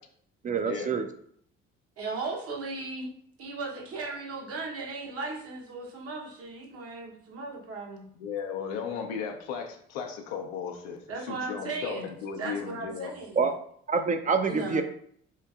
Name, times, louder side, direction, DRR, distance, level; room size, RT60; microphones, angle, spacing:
voice 1, 0.4-1.0 13.4-13.5 13.9-14.8, right 5 dB, 30° right, 7 dB, 0.4 m, -26 dB
voice 2, 2.0-3.1 3.4-8.0 11.1-12.1 12.4-13.5 14.4-14.8, right 3 dB, 55° right, -1 dB, 0.9 m, -36 dB
voice 3, 8.2-13.1, left 6 dB, 85° left, 3 dB, 0.5 m, -36 dB
2.9 x 2.5 x 2.3 m, 0.64 s
hypercardioid pair, 55°, 29 cm